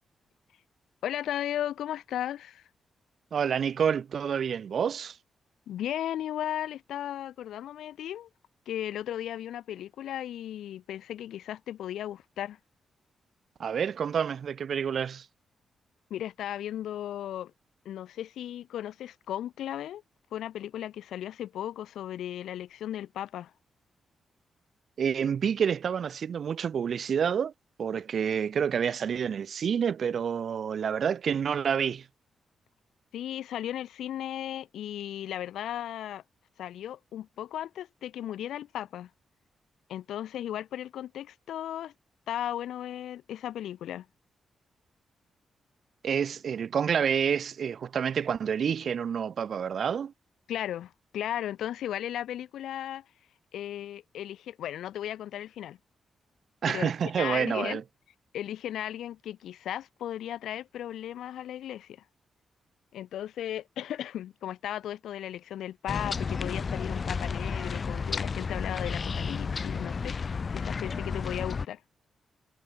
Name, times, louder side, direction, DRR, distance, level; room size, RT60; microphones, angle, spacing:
voice 1, 1.0-2.6 5.7-8.3 8.7-12.6 16.1-17.5 17.8-20.0 20.3-23.5 33.1-36.2 36.6-39.1 39.9-41.9 42.3-44.1 50.5-53.0 53.5-55.8 56.7-57.8 58.3-62.0 62.9-71.8, left 11 dB, 85° left, 4.7 m, -36 dB
voice 2, 3.3-5.2 13.6-15.3 25.0-27.5 27.8-32.1 46.0-50.1 56.6-57.8, right 7 dB, 65° right, 2.6 m, -28 dB
sound 1, 65.9-71.7, left 5 dB, 50° left, 3.7 m, -32 dB
cardioid pair, 60°, 0 cm